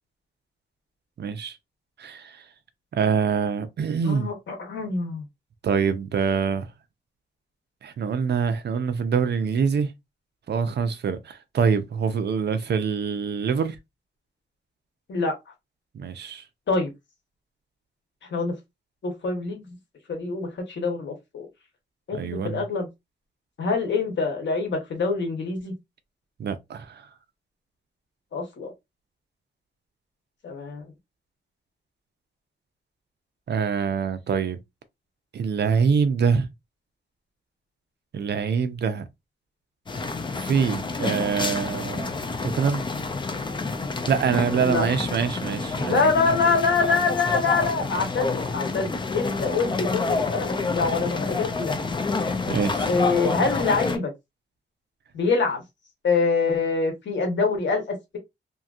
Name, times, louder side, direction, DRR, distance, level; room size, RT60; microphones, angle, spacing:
voice 1, 1.2-1.6 2.0-2.4 2.9-4.3 5.6-6.7 7.8-9.9 10.5-13.8 15.9-16.4 22.1-22.6 26.4-27.1 33.5-34.6 35.3-36.5 38.1-39.0 40.4-42.1 42.4-42.8 44.1-46.1 52.5-52.9, right 6 dB, 70° right, 0.5 m, -25 dB
voice 2, 4.0-5.2 15.1-15.3 16.7-16.9 18.3-18.5 19.0-19.6 20.1-21.5 22.1-22.9 23.6-25.7 28.3-28.7 30.4-30.9 44.6-44.9 45.9-51.7 52.9-54.1 55.1-55.6 56.0-58.2, left 4 dB, 85° left, 1.0 m, -25 dB
sound 1, 39.9-54.0, left 3 dB, 25° left, 0.4 m, -28 dB
2.8 x 2.5 x 2.4 m
wide cardioid pair, 130°, 18 cm